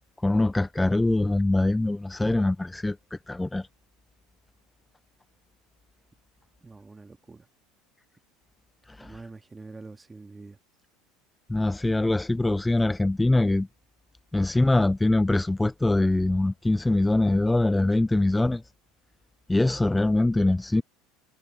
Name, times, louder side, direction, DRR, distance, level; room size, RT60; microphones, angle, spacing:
voice 1, 0.2-3.7 8.9-9.1 11.5-13.7 14.3-18.6 19.5-20.8, left 2 dB, 10° left, 0.3 m, -23 dB
voice 2, 6.6-7.5 9.0-10.6, right 3 dB, 15° right, 2.0 m, -45 dB
supercardioid pair, 90°, 0 cm